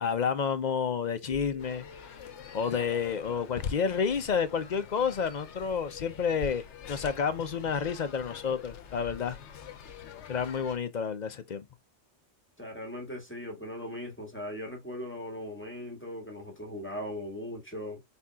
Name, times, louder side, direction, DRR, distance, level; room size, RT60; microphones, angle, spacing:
voice 1, 0.0-1.9 2.5-9.4 10.3-11.6, left 6 dB, 50° left, 0.6 m, -30 dB
sound 1, 1.3-4.8, left 3 dB, 80° right, 2.6 m, -52 dB
sound 2, 1.6-10.8, left 7 dB, 75° left, 1.1 m, -44 dB
voice 2, 12.6-18.0, left 1 dB, 10° left, 1.5 m, -39 dB
4.4 x 4.1 x 2.3 m
omnidirectional pair, 1.2 m